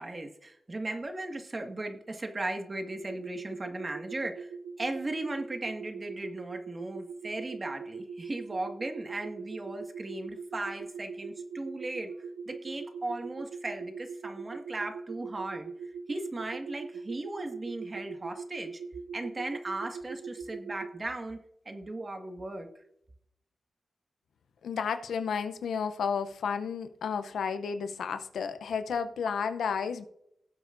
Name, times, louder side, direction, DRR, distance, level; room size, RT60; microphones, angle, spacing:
voice 1, 0.0-4.5 4.8-12.1 12.5-15.7 16.1-18.8 19.1-21.4 21.7-22.7, right 2 dB, 40° right, 1.7 m, -37 dB
sound 1, 3.0-21.0, right 5 dB, 90° right, 0.5 m, -41 dB
voice 2, 24.6-30.1, left 6 dB, 90° left, 0.6 m, -32 dB
18.5 x 7.9 x 2.6 m
cardioid pair, 50°, 0 cm